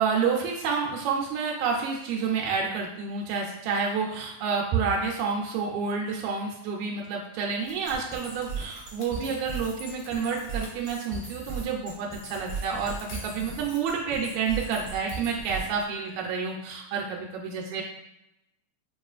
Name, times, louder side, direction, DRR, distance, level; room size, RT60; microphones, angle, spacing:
voice 1, 0.0-17.8, right 5 dB, 85° right, -1 dB, 1.9 m, -29 dB
sound 1, 7.6-11.7 12.2-15.4, left 3 dB, 75° left, 1.9 m, -50 dB
sound 2, 7.9-15.9, right 5 dB, 30° right, 1.2 m, -37 dB
5.3 x 2.4 x 2.3 m, 0.87 s
omnidirectional pair, 3.3 m